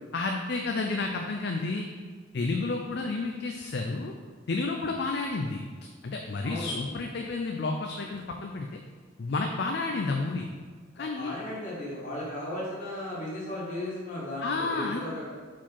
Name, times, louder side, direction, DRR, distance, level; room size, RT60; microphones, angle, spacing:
voice 1, 0.1-1.9 2.3-4.1 4.5-5.6 6.0-8.8 9.2-10.5 11.0-11.4 14.4-15.0, left 3 dB, 55° left, 3 dB, 0.4 m, -31 dB
voice 2, 6.4-6.7 11.0-15.2, left 1 dB, 40° left, -7 dB, 1.7 m, -36 dB
4.9 x 4.5 x 5.5 m, 1.5 s
head